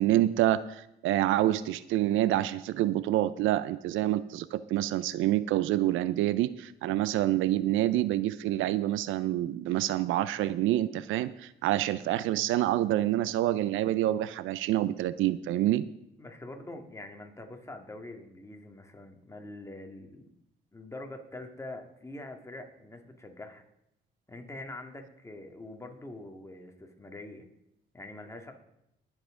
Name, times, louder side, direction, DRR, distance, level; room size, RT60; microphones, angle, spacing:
voice 1, 0.0-15.8, right 14 dB, 90° right, 16 dB, 0.5 m, -27 dB
voice 2, 16.2-20.3 20.7-23.6 24.3-27.5 27.9-28.5, left 2 dB, 15° left, 4 dB, 1.9 m, -44 dB
20.5 x 7.3 x 3.7 m, 0.81 s
cardioid pair, 90°, 20 cm